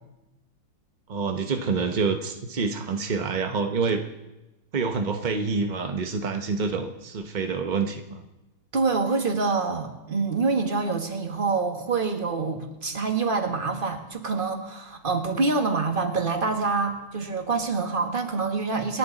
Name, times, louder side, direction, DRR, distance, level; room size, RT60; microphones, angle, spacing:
voice 1, 1.1-4.0 4.7-8.2, right 4 dB, 55° right, 5 dB, 0.5 m, -27 dB
voice 2, 8.7-19.0, right 4 dB, 30° right, 4 dB, 1.5 m, -26 dB
27.5 x 11.0 x 4.0 m, 1.0 s
omnidirectional pair, 2.2 m